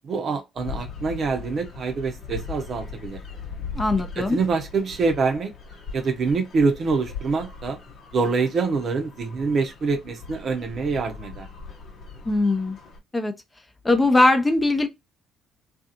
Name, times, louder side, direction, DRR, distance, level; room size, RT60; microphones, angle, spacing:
voice 1, 0.0-3.2 4.2-5.5 5.9-7.8 8.1-11.5, right 4 dB, 55° right, 0.7 m, -25 dB
sound 1, 0.6-13.0, left 5 dB, 60° left, 0.8 m, -39 dB
voice 2, 3.7-4.4 12.3-12.8 13.1-13.3 13.8-14.9, left 2 dB, 20° left, 0.6 m, -20 dB
2.6 x 2.4 x 2.6 m
hypercardioid pair, 55°, 0 cm